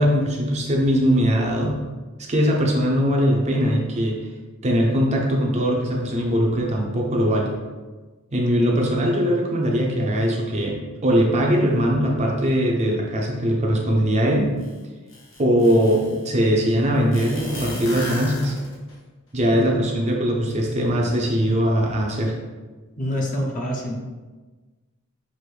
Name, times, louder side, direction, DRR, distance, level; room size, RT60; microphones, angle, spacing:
voice 1, 0.0-1.8 2.2-4.2 4.6-7.5 8.3-14.5 15.4-18.5 19.3-22.3, equal, 30° right, -1 dB, 0.6 m, -21 dB
sound 1, 14.6-14.7 15.1-16.2 17.1-18.9, left 1 dB, 60° left, 1.2 m, -34 dB
voice 2, 23.0-24.0, equal, 35° left, 0 dB, 0.7 m, -26 dB
6.0 x 2.6 x 3.3 m, 1.3 s
head